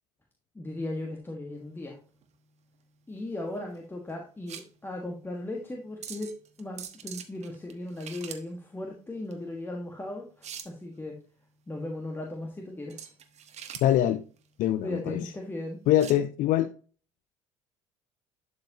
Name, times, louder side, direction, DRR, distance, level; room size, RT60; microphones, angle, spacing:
voice 1, 0.5-2.0 3.1-6.3 6.6-11.2 11.7-13.1 14.8-15.8, left 1 dB, 10° left, 1.6 m, -37 dB
sound 1, 1.6-16.2, right 8 dB, 40° right, 1.2 m, -47 dB
voice 2, 13.8-14.2 14.6-15.2 15.9-16.7, left 12 dB, 50° left, 0.6 m, -23 dB
11.5 x 4.8 x 2.9 m
figure-of-eight pair, 65°, 17 cm